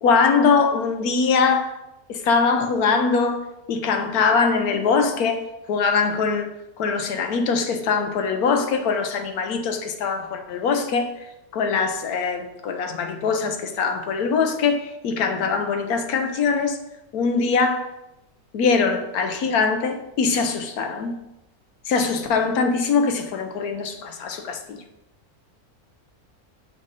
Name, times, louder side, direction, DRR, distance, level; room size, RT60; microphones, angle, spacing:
voice 1, 0.0-1.7 2.1-6.5 6.8-11.1 11.5-16.8 17.1-17.9 18.5-21.2 21.9-24.8, left 5 dB, 75° left, 1.2 m, -22 dB
6.1 x 4.1 x 5.5 m
omnidirectional pair, 1.6 m